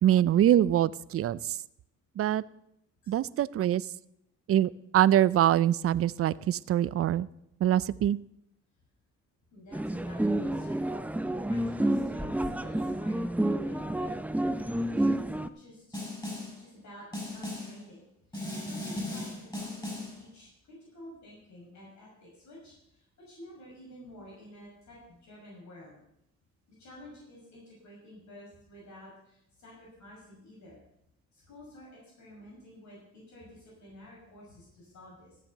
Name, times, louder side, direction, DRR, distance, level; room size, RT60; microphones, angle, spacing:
voice 1, 0.0-1.6 2.2-2.4 3.1-3.8 4.5-7.3 7.6-8.2, right 11 dB, 50° right, 19 dB, 0.5 m, -24 dB
voice 2, 9.5-16.0 16.6-18.0 18.3-26.0 26.7-30.8 31.3-35.4, left 1 dB, 70° left, -4 dB, 6.0 m, -51 dB
sound 1, 9.7-15.5, right 1 dB, 5° right, 0.6 m, -29 dB
Snare drum, 15.9-16.6 17.1-17.8 18.3-20.2, left 1 dB, 15° left, 5.7 m, -37 dB
13.5 x 7.6 x 6.5 m, 0.79 s
cardioid pair, 90°, 30 cm